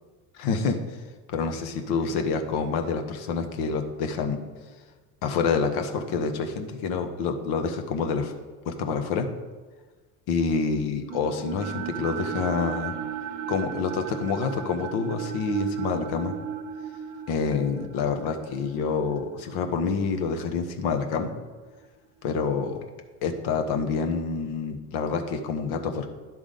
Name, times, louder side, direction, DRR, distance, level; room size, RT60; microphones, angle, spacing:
voice 1, 0.3-1.0 1.3-4.4 5.2-8.3 8.6-9.3 10.3-12.9 13.5-16.3 17.3-21.3 22.2-22.8 23.2-26.1, left 5 dB, 55° left, 6 dB, 1.1 m, -27 dB
sound 1, 11.1-21.3, right 9 dB, 40° right, 0.8 m, -36 dB
10.5 x 3.6 x 5.0 m, 1.3 s
hypercardioid pair, 70°, 46 cm